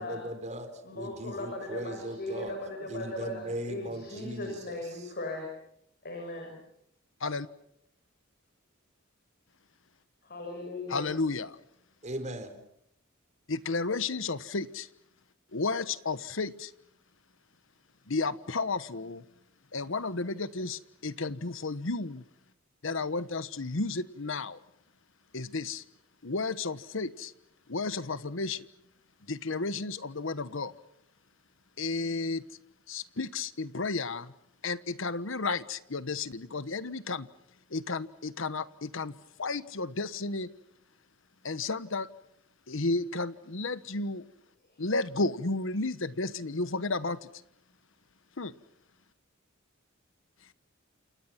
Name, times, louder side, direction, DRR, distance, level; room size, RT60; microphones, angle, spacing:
voice 1, 0.0-0.7 0.9-2.6 2.9-4.8 12.0-12.5, right 1 dB, 35° right, 8 dB, 4.0 m, -38 dB
voice 2, 0.8-5.5 6.0-6.6 10.2-11.1 44.7-44.8, left 1 dB, 50° left, 2 dB, 7.0 m, -38 dB
voice 3, 10.9-11.6 13.5-14.9 15.5-16.7 18.1-19.2 19.7-22.2 22.8-24.6 25.3-25.8 26.2-27.3 27.7-28.7 29.3-30.7 31.8-32.4 32.9-34.3 34.6-37.3 37.7-40.5 41.4-42.1 42.7-44.2 44.8-47.3 48.4-48.5, left 3 dB, 70° left, 15 dB, 1.2 m, -32 dB
29.5 x 28.0 x 5.9 m, 0.74 s
head